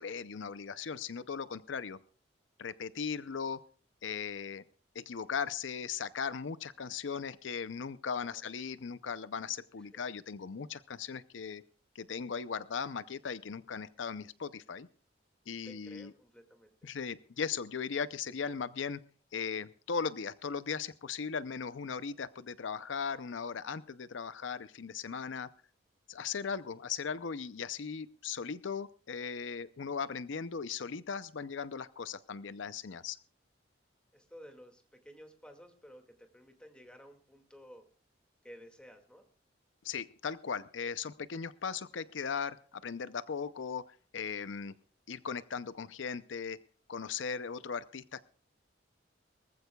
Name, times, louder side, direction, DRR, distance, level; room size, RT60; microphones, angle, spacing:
voice 1, 0.0-2.0 2.6-3.6 4.0-4.6 4.9-11.6 11.9-14.9 15.5-16.1 16.8-19.0 19.3-25.5 26.1-33.2 39.8-43.8 44.1-44.7 45.1-46.6 46.9-48.2, left 6 dB, 80° left, 15 dB, 0.6 m, -38 dB
voice 2, 8.2-8.5 9.8-10.0 15.6-16.7 34.1-37.8 38.4-39.2, equal, 5° left, 4 dB, 2.1 m, -54 dB
24.0 x 15.0 x 2.3 m, 0.41 s
head